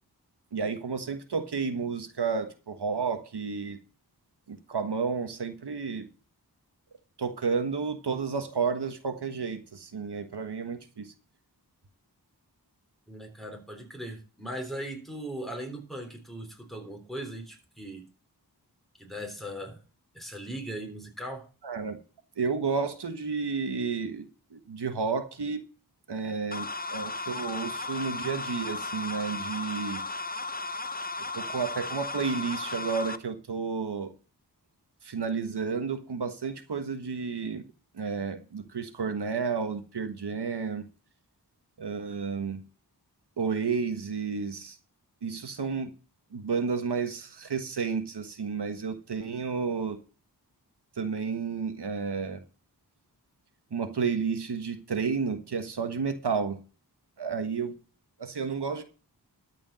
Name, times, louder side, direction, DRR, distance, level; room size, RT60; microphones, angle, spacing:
voice 1, 0.5-3.8 4.5-6.1 7.2-11.1 21.6-22.0 22.4-25.7 26.1-30.0 31.3-34.1 35.0-37.6 37.9-40.8 41.8-42.6 43.4-44.8 45.2-45.9 46.3-50.0 51.0-52.4 53.7-56.6 57.2-57.8 58.2-58.8, right 5 dB, 85° right, 1.4 m, -31 dB
voice 2, 13.1-18.0 19.0-19.8 20.1-21.5, right 1 dB, ahead, 3.8 m, -39 dB
sound 1, 26.5-33.2, left 3 dB, 25° left, 0.8 m, -35 dB
13.0 x 5.0 x 7.6 m
wide cardioid pair, 65°, 39 cm